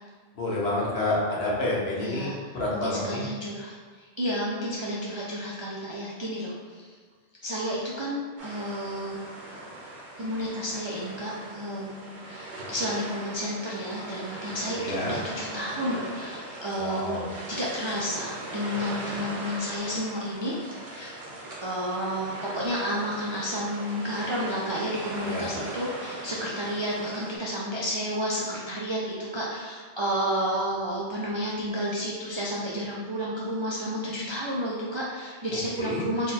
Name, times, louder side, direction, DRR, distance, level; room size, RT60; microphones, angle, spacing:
voice 1, 0.4-3.2 14.8-15.2 16.8-17.3 25.2-25.5 35.8-36.1, left 2 dB, 65° left, -5 dB, 1.1 m, -29 dB
voice 2, 2.0-6.9 7.4-9.2 9.5-9.6 10.2-21.1 21.6-36.3, equal, 50° right, -6 dB, 0.3 m, -31 dB
sound 1, 8.4-27.4, right 1 dB, 65° right, 1.0 m, -39 dB
3.6 x 2.3 x 4.1 m, 1.5 s
omnidirectional pair, 1.2 m